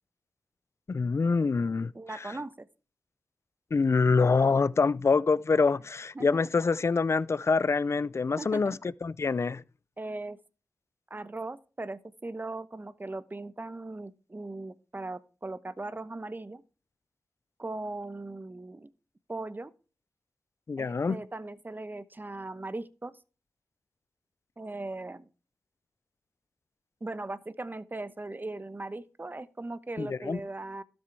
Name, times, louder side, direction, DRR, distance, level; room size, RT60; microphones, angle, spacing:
voice 1, 0.9-1.9 3.7-9.6 20.7-21.2 30.0-30.4, left 4 dB, 45° left, 0.5 m, -25 dB
voice 2, 1.9-2.7 6.1-6.4 8.4-8.8 10.0-10.4 11.1-16.6 17.6-18.9 19.3-19.7 20.8-23.2 24.6-25.3 27.0-30.8, right 2 dB, 30° right, 0.9 m, -39 dB
12.5 x 6.3 x 4.6 m
cardioid pair, 40°, 7 cm